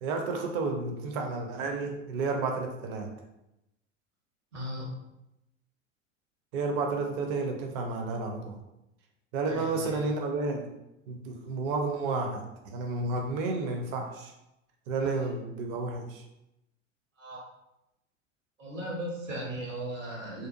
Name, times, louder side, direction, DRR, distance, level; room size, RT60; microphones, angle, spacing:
voice 1, 0.0-3.1 6.5-8.6 9.3-10.7 11.1-14.3 14.9-16.2, right 3 dB, 30° right, 3 dB, 0.4 m, -31 dB
voice 2, 4.5-4.9 9.4-9.9 15.0-15.3 17.2-17.4 18.6-20.5, right 1 dB, 80° right, -3 dB, 1.0 m, -37 dB
2.6 x 2.3 x 2.5 m, 0.90 s
figure-of-eight pair, 85°, 38 cm